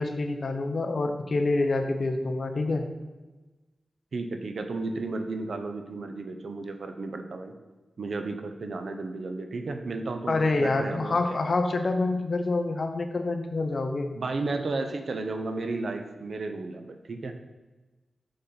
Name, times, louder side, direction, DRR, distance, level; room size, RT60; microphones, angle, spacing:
voice 1, 0.0-2.8 10.3-14.1, left 3 dB, 45° left, 6 dB, 0.7 m, -27 dB
voice 2, 4.1-7.5 8.0-11.4 14.1-17.4, right 3 dB, 60° right, 6 dB, 0.7 m, -33 dB
6.6 x 4.0 x 5.6 m, 1.2 s
wide cardioid pair, 165°, 0 cm